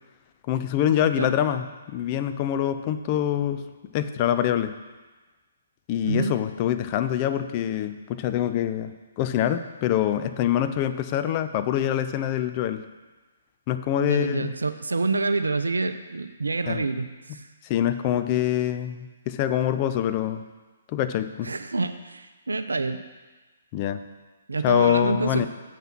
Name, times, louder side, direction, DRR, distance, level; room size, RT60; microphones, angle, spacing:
voice 1, 0.5-3.6 3.9-4.7 5.9-8.9 9.2-12.8 13.7-14.5 16.7-16.9 17.6-20.4 20.9-21.5 23.7-24.0 24.6-25.5, left 10 dB, 35° left, 10 dB, 0.5 m, -25 dB
voice 2, 14.0-17.5 21.4-23.0 24.5-25.5, right 3 dB, 80° right, 10 dB, 0.6 m, -27 dB
7.5 x 5.5 x 6.0 m, 1.2 s
figure-of-eight pair, 130°, 0 cm